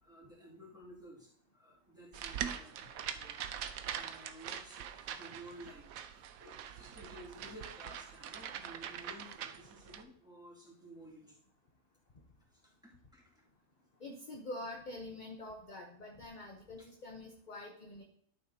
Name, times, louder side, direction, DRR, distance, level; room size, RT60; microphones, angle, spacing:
voice 1, 0.0-3.6 3.9-5.9 6.1-11.4 12.5-13.4, equal, 5° right, -6 dB, 2.4 m, -54 dB
sound 1, 2.1-10.0, right 9 dB, 90° right, 1.1 m, -43 dB
voice 2, 14.0-18.0, left 2 dB, 40° left, 1 dB, 1.0 m, -46 dB
12.0 x 6.6 x 2.8 m, 0.64 s
omnidirectional pair, 1.4 m